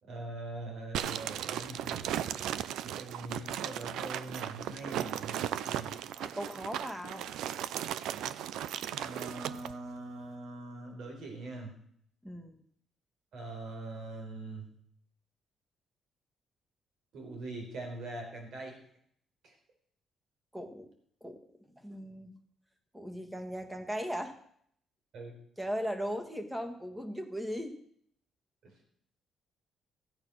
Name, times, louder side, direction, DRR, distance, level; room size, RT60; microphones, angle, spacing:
voice 1, 0.0-5.9 8.9-11.8 13.3-14.7 17.1-18.8 19.4-19.5 25.1-25.3 28.6-28.8, right 2 dB, 70° right, 2 dB, 4.4 m, -43 dB
sound 1, 0.9-9.7, right 11 dB, 90° right, 0.5 m, -36 dB
voice 2, 6.1-7.3 12.2-12.6 20.5-20.9 21.2-21.4 21.7-22.3 22.9-24.3 25.6-27.8, equal, 10° right, 7 dB, 1.7 m, -38 dB
15.0 x 8.8 x 6.4 m, 0.65 s
cardioid pair, 130°, 0 cm